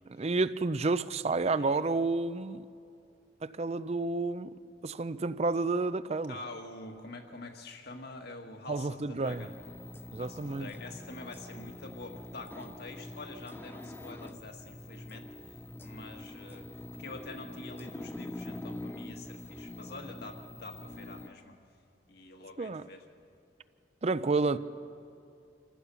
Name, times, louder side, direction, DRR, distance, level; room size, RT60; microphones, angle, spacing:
voice 1, 0.1-2.6 3.4-4.5 4.8-6.4 8.7-9.4 10.1-10.7 22.6-22.9 24.0-24.6, right 3 dB, 35° right, 0.5 m, -30 dB
voice 2, 1.5-1.8 6.3-9.5 10.2-15.3 15.8-16.7 17.0-21.5 22.1-23.0, left 2 dB, 60° left, 1.7 m, -46 dB
sound 1, 9.2-21.3, left 1 dB, 10° left, 0.5 m, -44 dB
27.5 x 14.5 x 6.9 m
head